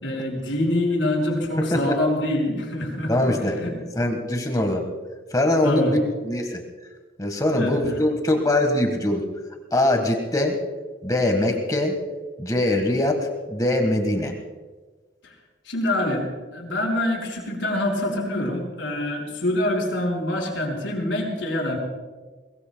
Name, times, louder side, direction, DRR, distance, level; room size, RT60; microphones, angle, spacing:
voice 1, 0.0-3.7 5.6-5.9 7.5-7.7 15.2-15.3 15.7-16.2 16.5-21.8, left 1 dB, 80° left, -1 dB, 5.1 m, -25 dB
voice 2, 1.6-1.9 3.1-4.8 5.3-6.6 7.2-9.2 9.7-10.6 11.0-12.0 12.4-14.4, left 1 dB, 20° left, 4 dB, 1.5 m, -22 dB
22.0 x 21.5 x 2.3 m, 1.3 s
head